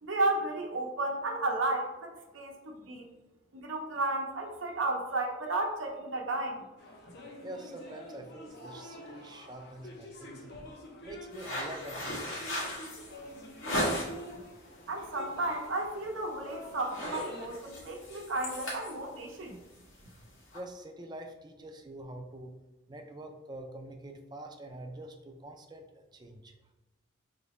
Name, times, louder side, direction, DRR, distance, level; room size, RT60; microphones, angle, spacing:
voice 1, 0.0-3.1 3.5-6.6 14.9-19.6, right 2 dB, 80° right, 1 dB, 0.7 m, -33 dB
sound 1, 6.8-17.5, equal, 55° left, 0.8 m, -48 dB
voice 2, 7.4-10.6 11.0-12.6 20.5-22.5 22.9-26.5, right 1 dB, 20° right, 4 dB, 0.4 m, -45 dB
sound 2, 11.3-14.3 14.8-15.1 15.5-15.7 16.0-16.4 16.7-20.6, equal, 85° left, 1.4 m, -36 dB
3.3 x 2.9 x 4.1 m, 1.1 s
head